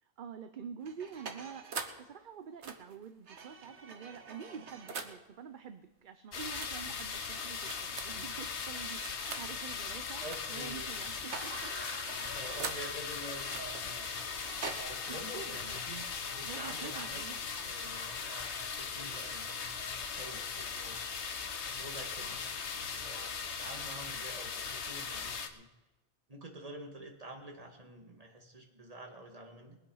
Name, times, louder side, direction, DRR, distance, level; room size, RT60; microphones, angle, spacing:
voice 1, 0.0-1.7 2.0-11.7 12.1-12.5 15.1-15.8 16.4-17.9, right 7 dB, 50° right, 9 dB, 0.8 m, -47 dB
sound 1, 0.8-2.1 2.6-5.2 6.4-6.7 7.6-8.3 9.0-9.5 10.2-10.6 10.9-12.9 13.5-14.8, right 5 dB, 85° right, 1.4 m, -44 dB
sound 2, 6.3-25.5, left 5 dB, 80° left, 1.3 m, -39 dB
voice 2, 10.2-10.9 12.3-14.1 14.8-16.1 16.3-17.3 17.6-21.0 21.7-22.5 22.9-25.7 26.3-29.8, right 1 dB, 35° right, 2 dB, 1.9 m, -48 dB
sound 3, 11.3-24.5, equal, 25° left, 1.4 m, -52 dB
21.0 x 8.2 x 5.6 m, 1.1 s
omnidirectional pair, 1.1 m